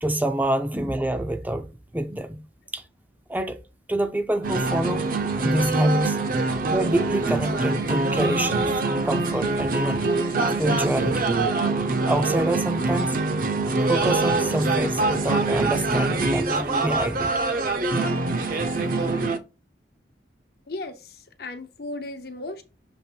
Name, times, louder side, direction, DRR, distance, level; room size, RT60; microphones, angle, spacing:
voice 1, 0.0-1.7 1.9-2.4 2.7-2.8 3.3-3.6 3.9-5.1 5.4-6.2 6.7-8.7 9.0-10.1 10.6-11.3 12.1-13.2 13.8-17.3 18.7-18.8, right 1 dB, 10° right, 0.5 m, -26 dB
sound 1, 4.4-19.4, right 3 dB, 50° right, 0.7 m, -24 dB
voice 2, 20.7-22.6, left 2 dB, 60° left, 0.9 m, -36 dB
7.1 x 3.1 x 4.4 m
head